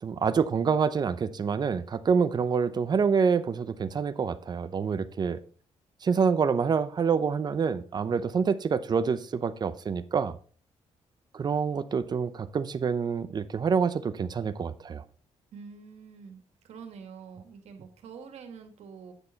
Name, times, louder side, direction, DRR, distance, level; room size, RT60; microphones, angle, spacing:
voice 1, 0.0-5.4 6.0-10.4 11.3-15.0, right 6 dB, 40° right, 13 dB, 0.7 m, -27 dB
voice 2, 15.5-19.1, right 6 dB, 80° right, 6 dB, 2.0 m, -46 dB
9.9 x 6.7 x 4.0 m, 0.43 s
cardioid pair, 125°, 11 cm